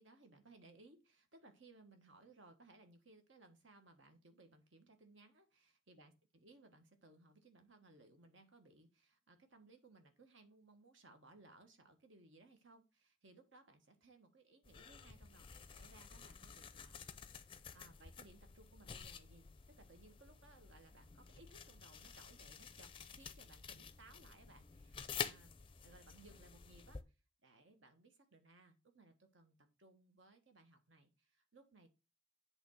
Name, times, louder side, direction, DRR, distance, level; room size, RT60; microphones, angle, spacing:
voice 1, 0.0-17.0 17.3-27.0 27.4-31.9, right 2 dB, 70° right, 6 dB, 1.4 m, -64 dB
sound 1, 14.6-27.0, left 6 dB, 25° left, 0.5 m, -50 dB
8.2 x 3.4 x 6.4 m, 0.30 s
head